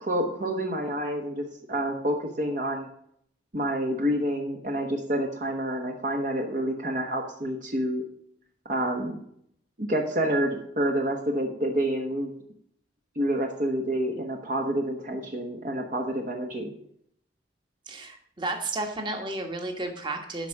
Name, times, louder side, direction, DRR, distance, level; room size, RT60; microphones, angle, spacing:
voice 1, 0.0-2.9 3.5-8.0 8.7-9.2 9.8-12.3 13.1-16.7, right 1 dB, 45° right, 2 dB, 1.2 m, -28 dB
voice 2, 17.9-20.5, right 2 dB, 25° right, 3 dB, 1.5 m, -32 dB
11.5 x 4.8 x 6.4 m, 0.69 s
head